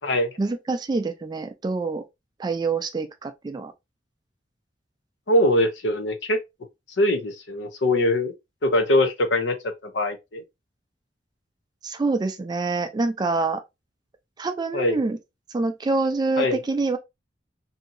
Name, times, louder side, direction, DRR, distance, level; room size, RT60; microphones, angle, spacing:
voice 1, 0.4-2.0 2.4-3.7 11.8-13.6 14.4-15.2 15.5-17.0, right 3 dB, 25° right, 0.3 m, -26 dB
voice 2, 5.3-6.4 7.0-8.3 8.6-10.4 14.7-15.0 16.4-16.6, left 1 dB, 85° left, 0.6 m, -22 dB
2.7 x 2.7 x 2.5 m
head